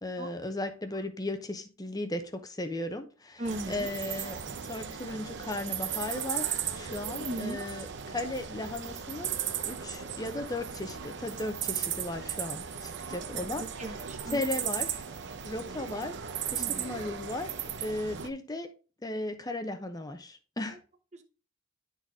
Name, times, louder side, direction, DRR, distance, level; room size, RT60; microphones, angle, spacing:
voice 1, 0.0-9.3 9.7-13.9 14.3-15.0 15.4-16.2 16.5-17.5 17.8-18.7 19.0-20.8, left 2 dB, 20° left, 8 dB, 0.8 m, -36 dB
voice 2, 3.4-3.9 7.0-7.7 13.1-14.4 16.6-16.9 21.1-21.2, right 1 dB, 35° right, 6 dB, 1.0 m, -39 dB
sound 1, 3.4-18.3, right 8 dB, 60° right, 0.7 m, -36 dB
11.0 x 4.1 x 3.6 m, 0.36 s
head